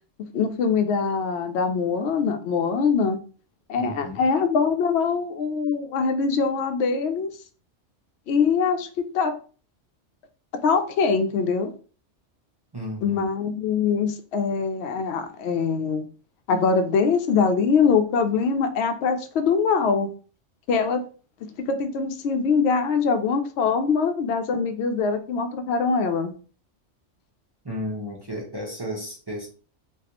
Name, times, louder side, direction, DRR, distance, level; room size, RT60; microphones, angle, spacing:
voice 1, 0.3-3.2 3.7-7.3 8.3-9.3 10.6-11.7 13.0-16.1 16.5-20.1 20.7-21.0 21.4-26.3, left 5 dB, 70° left, 0.8 m, -23 dB
voice 2, 3.8-4.2 12.7-13.2 27.6-29.5, equal, 25° right, 0.7 m, -33 dB
4.0 x 2.4 x 2.9 m
omnidirectional pair, 1.2 m